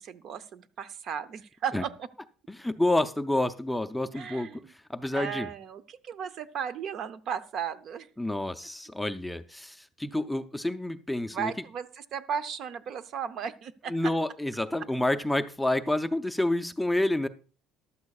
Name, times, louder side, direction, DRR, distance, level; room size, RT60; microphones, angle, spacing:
voice 1, 0.0-2.1 4.1-4.7 5.1-8.1 11.3-14.1, right 7 dB, 50° right, 12 dB, 0.6 m, -35 dB
voice 2, 2.5-5.5 8.2-11.5 13.9-17.3, left 1 dB, 5° left, 8 dB, 0.5 m, -29 dB
14.5 x 11.5 x 2.4 m, 0.37 s
cardioid pair, 150°, 0 cm